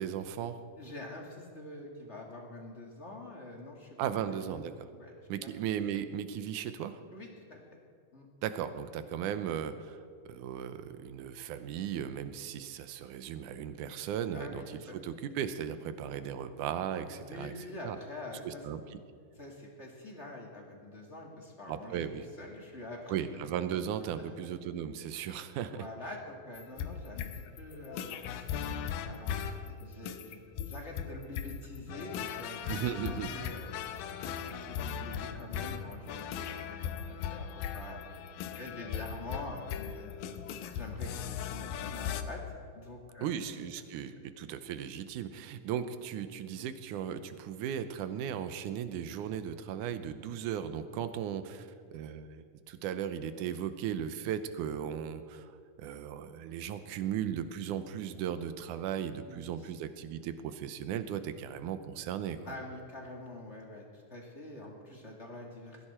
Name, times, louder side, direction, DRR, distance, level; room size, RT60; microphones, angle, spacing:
voice 1, 0.0-0.6 4.0-4.9 5.3-7.0 8.4-14.6 14.9-17.5 17.8-18.0 18.5-19.0 21.7-22.3 23.1-25.8 32.7-33.3 43.2-55.5 55.8-62.4, right 9 dB, 75° right, 10 dB, 2.1 m, -36 dB
voice 2, 0.8-4.6 4.9-5.1 5.4-5.5 7.1-7.6 8.1-8.3 14.3-15.0 17.1-18.6 19.3-22.0 22.4-23.1 24.2-24.4 25.6-38.1 38.5-40.3 40.7-42.4 42.7-43.4 59.2-59.7 62.5-65.8, left 2 dB, 25° left, -1 dB, 1.7 m, -46 dB
sound 1, 26.6-42.2, left 8 dB, 80° left, 2.6 m, -38 dB
21.0 x 15.5 x 4.4 m, 2.1 s
omnidirectional pair, 4.1 m